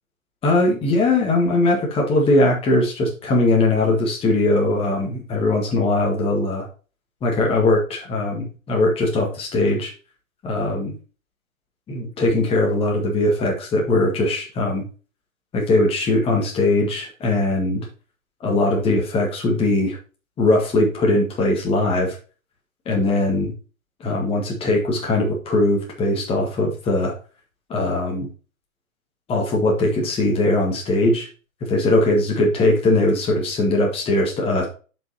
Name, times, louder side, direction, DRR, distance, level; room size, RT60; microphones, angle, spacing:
voice 1, 0.4-6.7 7.2-9.9 10.4-10.9 11.9-14.8 15.5-17.9 18.4-20.0 20.4-22.1 22.8-23.5 24.0-27.1 27.7-28.3 29.3-31.3 31.6-34.7, left 2 dB, 15° left, 0 dB, 1.7 m, -20 dB
9.5 x 5.6 x 2.8 m, 0.35 s
figure-of-eight pair, 125°, 41 cm